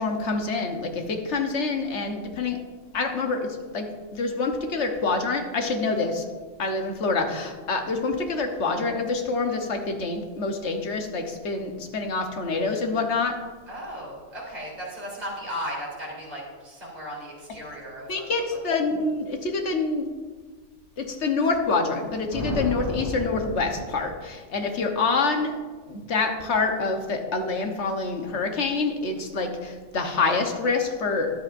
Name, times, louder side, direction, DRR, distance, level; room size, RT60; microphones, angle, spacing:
voice 1, 0.0-2.6 2.9-3.9 4.1-6.3 6.6-13.3 18.1-20.1 21.0-25.6 25.9-31.3, left 3 dB, 70° left, 3 dB, 1.4 m, -26 dB
voice 2, 13.7-18.6, equal, 35° right, -5 dB, 3.6 m, -36 dB
sound 1, 22.3-24.4, equal, 30° left, 3.8 m, -32 dB
13.5 x 10.5 x 2.6 m, 1.4 s
omnidirectional pair, 1.2 m